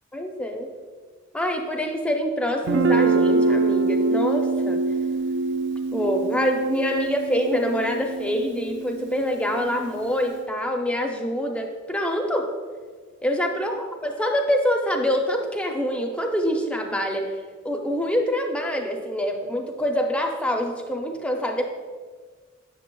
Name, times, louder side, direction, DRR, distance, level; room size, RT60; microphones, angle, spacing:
voice 1, 0.1-0.7 1.3-4.8 5.9-12.5 13.2-17.3 17.6-21.7, equal, 5° left, 3 dB, 0.5 m, -25 dB
Guitar, 2.7-10.4, right 3 dB, 60° right, 0.3 m, -25 dB
7.1 x 6.7 x 2.2 m, 1.5 s
head